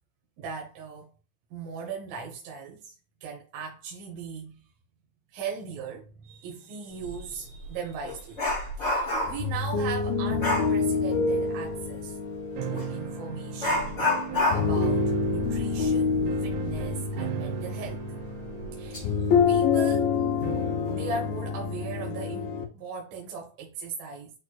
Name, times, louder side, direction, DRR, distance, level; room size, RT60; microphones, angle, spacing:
voice 1, 0.4-1.1 1.5-3.0 3.2-4.6 5.3-12.2 12.6-14.0 14.5-18.1 18.7-19.1 19.5-20.1 20.9-24.3, right 5 dB, 70° right, 2.3 m, -38 dB
Dog, 7.0-7.2 7.6-9.5 10.4-10.8 12.7-12.9 13.6-16.9 17.2-17.3 17.8-17.9 18.6-19.0 19.4-19.6, left 2 dB, 40° left, 0.9 m, -29 dB
sound 1, 9.3-22.6, left 5 dB, 90° left, 2.0 m, -27 dB
sound 2, 12.5-21.0, right 11 dB, 85° right, 2.4 m, -39 dB
11.0 x 4.2 x 2.3 m
omnidirectional pair, 5.6 m